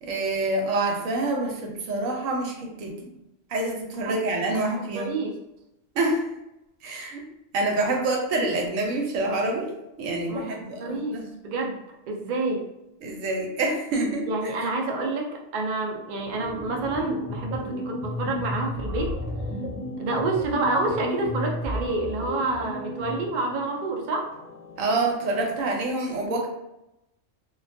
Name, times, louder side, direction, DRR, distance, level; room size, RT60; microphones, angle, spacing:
voice 1, 0.0-3.1 3.5-5.1 5.9-6.3 6.8-7.2 7.5-9.7 10.0-11.2 13.0-14.7 24.8-26.5, right 2 dB, 90° right, 1 dB, 1.0 m, -27 dB
voice 2, 4.7-5.4 10.3-11.8 12.1-12.6 14.3-19.2 20.0-24.3, right 2 dB, 70° right, 1 dB, 0.4 m, -28 dB
sound 1, 16.2-23.3, equal, 40° left, 0.5 m, -33 dB
sound 2, 17.1-25.9, left 4 dB, 70° left, 0.8 m, -46 dB
2.3 x 2.2 x 2.5 m, 0.87 s
omnidirectional pair, 1.3 m